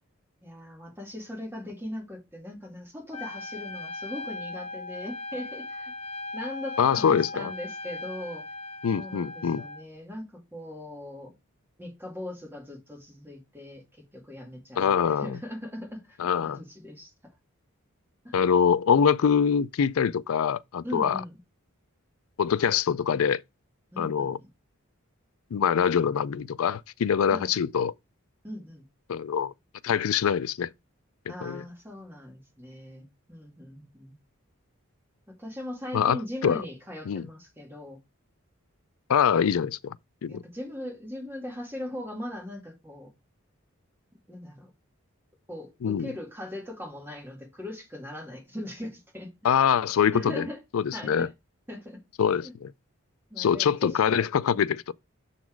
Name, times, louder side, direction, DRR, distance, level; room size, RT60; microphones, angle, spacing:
voice 1, 0.4-5.9 6.3-8.5 8.9-10.2 10.5-11.4 11.8-17.1 18.2-18.4 20.8-21.3 23.9-24.5 27.3-27.5 28.4-28.8 31.3-34.2 35.3-38.0 40.3-43.1 44.3-44.7 45.5-49.3 50.1-50.6 50.9-51.3 51.7-52.0 52.4-52.5 53.3-54.0, left 1 dB, 10° right, 2.1 m, -39 dB
Trumpet, 3.1-9.8, left 2 dB, 30° left, 0.7 m, -38 dB
voice 2, 6.8-7.5 8.8-9.6 14.8-15.4 16.2-16.6 18.3-21.2 22.4-23.4 24.0-24.4 25.5-27.9 29.1-29.5 29.8-30.7 31.4-31.6 35.9-36.6 37.1-37.3 39.1-40.0 40.2-40.4 45.8-46.1 49.4-50.5 50.7-51.3 52.2-52.7 53.4-54.9, left 7 dB, 80° left, 0.4 m, -24 dB
7.1 x 4.2 x 4.5 m
head